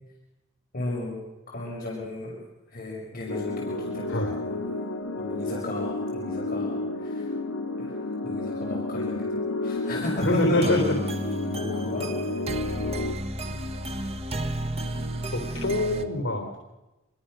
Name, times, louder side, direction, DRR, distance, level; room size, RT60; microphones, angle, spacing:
voice 1, 0.7-2.4 2.7-4.4 5.2-7.3 7.8-10.8 11.5-12.1, left 2 dB, 45° left, -3 dB, 5.9 m, -34 dB
sound 1, 3.3-13.1, left 2 dB, 90° left, 2.4 m, -31 dB
voice 2, 4.1-4.4 10.2-10.8 15.3-16.6, left 1 dB, 65° left, 2 dB, 3.7 m, -25 dB
sound 2, 10.2-16.0, right 1 dB, 30° right, 1.7 m, -32 dB
26.0 x 22.0 x 6.5 m, 1.0 s
head